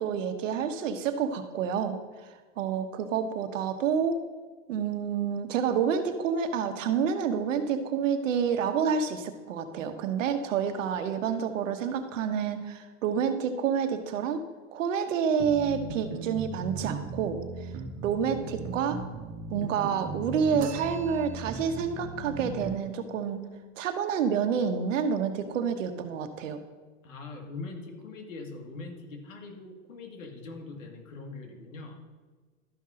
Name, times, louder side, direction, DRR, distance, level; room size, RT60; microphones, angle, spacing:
voice 1, 0.0-2.0 2.6-4.2 4.7-14.4 14.7-17.7 18.0-19.0 19.5-23.4 23.8-26.6, right 7 dB, 85° right, 8 dB, 1.2 m, -28 dB
sound 1, 15.4-22.8, right 4 dB, 45° right, 1.5 m, -37 dB
sound 2, 20.6-21.8, right 7 dB, 20° right, 0.7 m, -44 dB
voice 2, 27.0-32.0, left 3 dB, 90° left, 2 dB, 2.2 m, -42 dB
12.5 x 5.6 x 3.8 m, 1.4 s
supercardioid pair, 125°, 38 cm